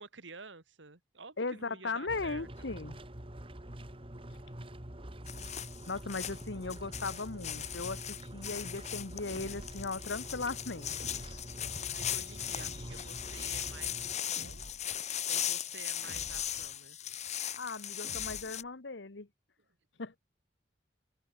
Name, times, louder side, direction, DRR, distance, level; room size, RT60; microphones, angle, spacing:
voice 1, 0.0-2.5 11.9-14.7 15.3-17.0, right 4 dB, 90° right, 2.2 m, -51 dB
voice 2, 1.4-3.0 5.9-10.9 17.6-19.3 20.0-20.2, left 3 dB, 75° left, 1.2 m, -38 dB
sound 1, 2.1-14.1, right 1 dB, 30° right, 2.8 m, -46 dB
sound 2, 5.3-18.6, left 10 dB, 40° left, 1.4 m, -38 dB
sound 3, 9.3-9.9 11.0-11.7 12.6-13.2 14.4-15.0 16.0-16.7 18.0-18.7, right 1 dB, 55° right, 2.6 m, -50 dB
head